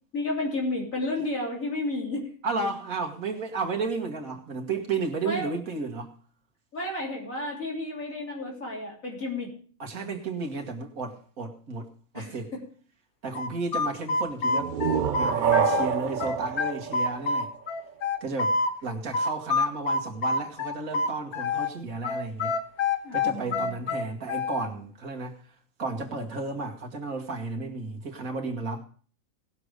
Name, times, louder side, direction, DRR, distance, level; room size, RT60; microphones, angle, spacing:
voice 1, 0.1-2.3 5.2-5.5 6.7-9.5 12.1-12.4 23.0-23.7, left 2 dB, 65° left, 3.7 m, -32 dB
voice 2, 2.4-6.1 9.8-12.5 13.2-14.7 15.1-17.5 18.2-22.6 23.1-25.4 25.8-28.8, right 3 dB, 75° right, 2.0 m, -33 dB
sound 1, 13.3-15.9 16.2-18.7 19.1-21.7 22.0-24.7, left 3 dB, 90° left, 1.4 m, -27 dB
sound 2, 14.4-18.0, right 8 dB, 50° right, 0.6 m, -28 dB
18.5 x 6.5 x 4.8 m
omnidirectional pair, 1.5 m